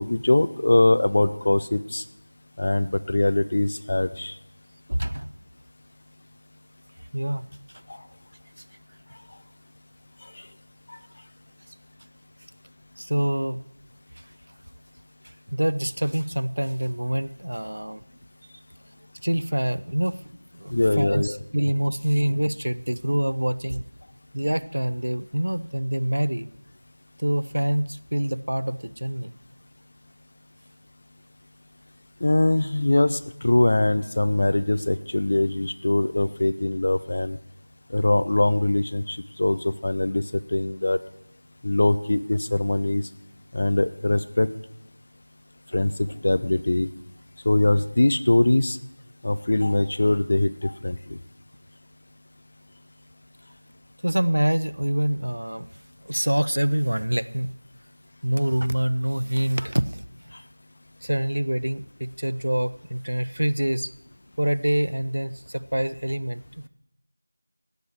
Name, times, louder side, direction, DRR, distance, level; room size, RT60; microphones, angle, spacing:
voice 1, 0.0-2.0 2.6-4.3 10.9-11.0 20.7-21.4 32.2-37.4 37.9-40.2 40.5-41.0 41.6-43.0 43.5-44.5 45.7-46.9 47.5-48.8 49.2-51.2, left 2 dB, 25° left, 13 dB, 0.3 m, -22 dB
voice 2, 4.9-5.3 7.1-7.5 13.0-13.6 15.2-18.0 19.2-20.2 20.5-23.8 24.3-26.5 27.2-29.3 54.0-55.7 56.0-57.5 58.2-60.0 61.0-63.9 64.4-66.7, right 1 dB, 65° right, 17 dB, 0.5 m, -25 dB
16.0 x 9.2 x 4.5 m, 0.87 s
figure-of-eight pair, 175°, 0 cm